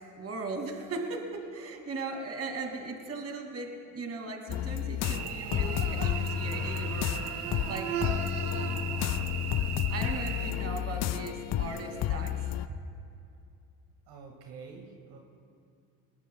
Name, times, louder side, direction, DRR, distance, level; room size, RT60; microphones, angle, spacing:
voice 1, 0.2-7.1 7.5-8.1 9.9-12.5, right 3 dB, 35° right, 2 dB, 2.7 m, -38 dB
sound 1, 4.5-12.7, left 12 dB, 40° left, 0.5 m, -31 dB
Cricket / Buzz, 5.0-10.5, right 7 dB, 85° right, 1.3 m, -36 dB
voice 2, 14.1-15.2, right 5 dB, 65° right, 1 dB, 2.2 m, -47 dB
20.5 x 20.0 x 2.4 m, 2.5 s
hypercardioid pair, 75°, 42 cm